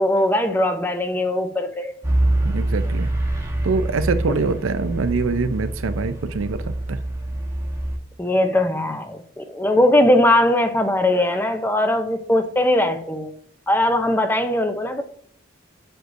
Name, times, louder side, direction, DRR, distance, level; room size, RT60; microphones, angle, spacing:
voice 1, 0.0-1.9 8.2-13.3 13.7-15.0, left 1 dB, 10° left, 0.5 m, -20 dB
sound 1, 2.0-8.0, right 1 dB, 15° right, 1.0 m, -25 dB
voice 2, 2.4-3.1 3.6-7.0, right 4 dB, 80° right, 0.5 m, -24 dB
7.9 x 6.3 x 2.6 m
head